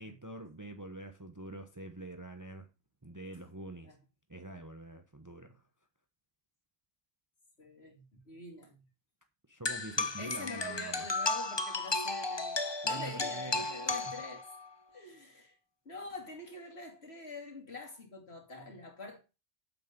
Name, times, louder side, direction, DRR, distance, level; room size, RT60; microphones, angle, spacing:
voice 1, 0.0-2.7 3.0-4.0 4.3-5.6 9.5-11.1 12.8-14.2, right 2 dB, 15° right, 1.0 m, -45 dB
voice 2, 7.6-8.8 10.2-14.4 14.9-15.6 15.8-19.2, left 2 dB, 55° left, 2.9 m, -45 dB
sound 1, 9.6-14.7, left 3 dB, 25° left, 0.8 m, -34 dB
8.4 x 7.7 x 5.2 m
omnidirectional pair, 1.3 m